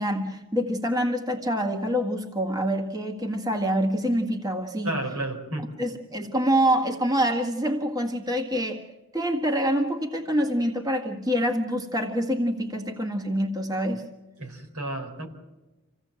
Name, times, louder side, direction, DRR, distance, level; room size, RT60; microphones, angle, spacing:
voice 1, 0.0-5.0 5.8-8.9 9.1-14.0, equal, 15° right, 3 dB, 1.8 m, -26 dB
voice 2, 4.8-5.8 14.4-15.3, right 1 dB, 85° right, 5 dB, 4.4 m, -32 dB
27.5 x 16.5 x 7.6 m, 1.1 s
head